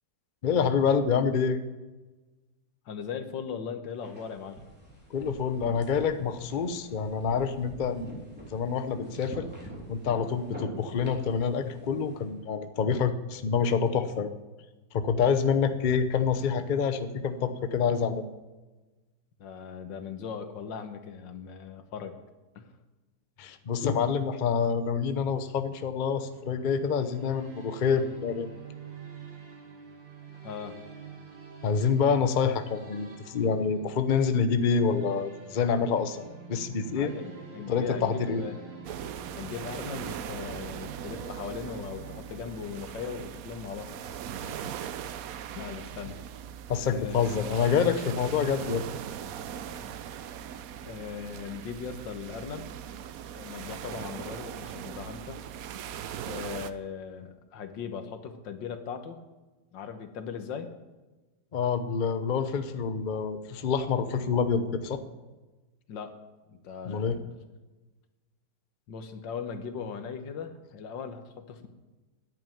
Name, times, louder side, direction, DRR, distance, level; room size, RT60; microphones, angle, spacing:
voice 1, 0.4-1.6 5.1-9.5 9.9-14.3 14.9-18.2 23.4-28.5 31.6-37.1 37.7-38.4 46.7-48.8 61.5-65.0 66.9-67.2, left 6 dB, 45° left, 10 dB, 0.6 m, -27 dB
voice 2, 2.9-4.6 19.4-22.2 22.6-22.7 30.4-30.8 36.9-38.7 39.3-43.9 44.4-44.7 45.5-46.2 46.8-47.6 48.6-48.8 49.5-49.9 50.8-52.7 53.3-55.4 56.2-59.2 59.7-60.7 65.9-66.1 66.5-67.4 68.9-71.7, left 6 dB, 90° left, 8 dB, 1.9 m, -39 dB
sound 1, 4.0-12.2, equal, 5° right, 3.7 m, -45 dB
sound 2, 25.9-43.6, right 6 dB, 85° right, 2.6 m, -47 dB
sound 3, 38.8-56.7, right 9 dB, 65° right, 1.0 m, -40 dB
10.5 x 9.0 x 9.1 m, 1.2 s
omnidirectional pair, 1.9 m